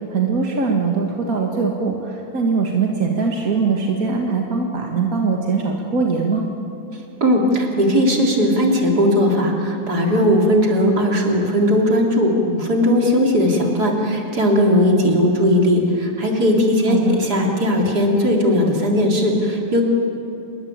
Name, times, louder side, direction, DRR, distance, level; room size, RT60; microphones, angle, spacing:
voice 1, 0.1-6.4 16.9-17.2, right 4 dB, 65° right, 1 dB, 2.3 m, -21 dB
voice 2, 7.2-19.8, equal, 90° right, 0 dB, 4.3 m, -18 dB
28.0 x 22.0 x 8.8 m, 2.7 s
omnidirectional pair, 1.6 m